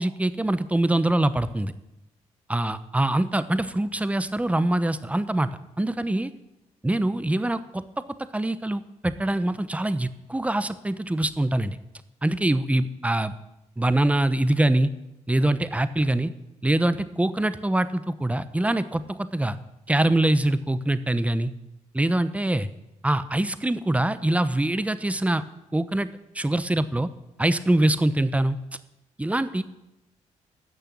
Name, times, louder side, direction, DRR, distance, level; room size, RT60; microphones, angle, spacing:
voice 1, 0.0-1.7 2.5-5.5 5.8-6.3 6.8-7.8 8.3-11.8 12.2-13.3 13.8-14.9 15.3-16.3 16.6-19.6 19.9-21.5 21.9-22.7 23.0-25.4 25.7-26.1 26.3-27.1 27.4-28.6 29.2-29.6, right 1 dB, 10° right, 13 dB, 0.9 m, -24 dB
12.0 x 6.6 x 8.9 m, 0.93 s
supercardioid pair, 65°, 13 cm